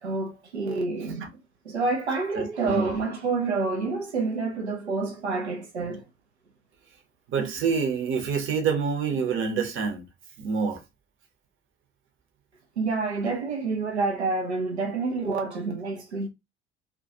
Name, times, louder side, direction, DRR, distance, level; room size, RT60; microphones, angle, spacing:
voice 1, 0.0-1.3 1.6-6.0 12.8-16.3, right 3 dB, 85° right, 0.5 m, -28 dB
voice 2, 2.3-2.9 7.3-10.0 10.4-10.8, right 5 dB, 40° right, 0.8 m, -27 dB
2.3 x 2.2 x 2.6 m
figure-of-eight pair, 55°, 32 cm